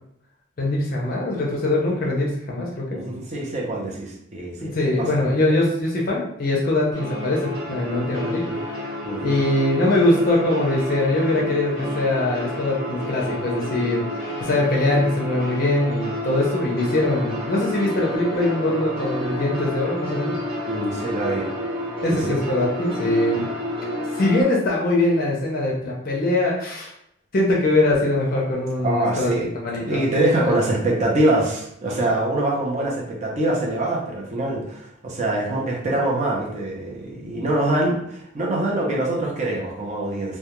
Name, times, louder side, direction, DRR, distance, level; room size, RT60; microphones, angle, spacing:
voice 1, 0.6-3.0 4.6-8.8 9.2-20.3 22.0-23.5 24.2-26.9 27.3-30.0 30.3-30.6, left 2 dB, 45° left, -3 dB, 0.5 m, -22 dB
voice 2, 2.9-5.1 9.0-9.4 20.7-21.5 22.1-22.4 28.8-29.5 29.8-40.4, right 1 dB, 35° right, -2 dB, 0.5 m, -24 dB
sound 1, 6.9-24.4, left 1 dB, 50° right, 1.1 m, -30 dB
2.3 x 2.1 x 2.9 m, 0.73 s
head